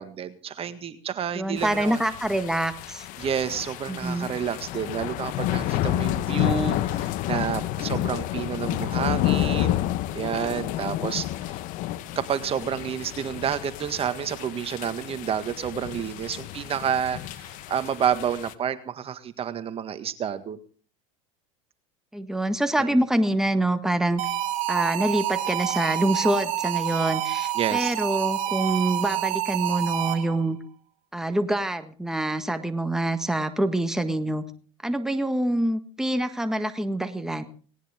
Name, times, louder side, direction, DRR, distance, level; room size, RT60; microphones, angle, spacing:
voice 1, 0.0-2.0 3.2-9.9 10.1-11.6 12.1-20.6 22.8-23.0 27.5-27.9, right 8 dB, 35° right, 11 dB, 1.7 m, -29 dB
voice 2, 1.3-3.1 3.9-4.3 22.1-24.2 24.7-30.6 31.1-34.4 34.8-37.4, right 1 dB, 5° right, 8 dB, 1.6 m, -26 dB
sound 1, 1.6-18.5, left 14 dB, 55° left, 1.2 m, -30 dB
sound 2, 24.2-30.5, right 13 dB, 55° right, 2.7 m, -28 dB
19.0 x 18.5 x 3.7 m, 0.42 s
hypercardioid pair, 85°, 16 cm